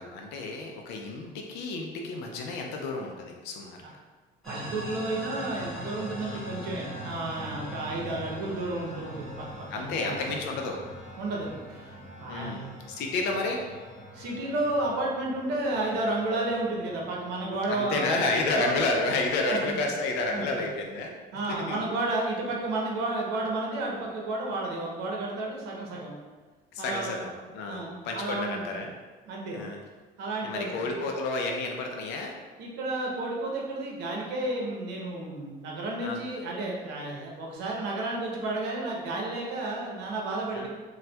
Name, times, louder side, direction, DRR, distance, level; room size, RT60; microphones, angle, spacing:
voice 1, 0.0-3.8 6.2-6.4 9.7-10.8 12.3-13.6 17.7-21.1 21.5-21.9 26.7-28.9 29.5-29.8 30.4-32.3 36.0-36.2 40.5-40.7, left 3 dB, 85° left, 1 dB, 0.4 m, -31 dB
sound 1, 4.4-17.7, equal, ahead, 1.1 m, -42 dB
voice 2, 4.4-10.2 11.2-11.9 12.2-12.7 14.1-18.2 18.5-18.7 19.5-19.8 20.3-20.4 21.3-26.1 26.8-27.2 27.7-28.8 29.3-29.6 30.2-31.0 32.6-40.7, right 2 dB, 90° right, -2 dB, 0.7 m, -32 dB
4.2 x 2.2 x 2.2 m, 1.4 s
cardioid pair, 110°, 17 cm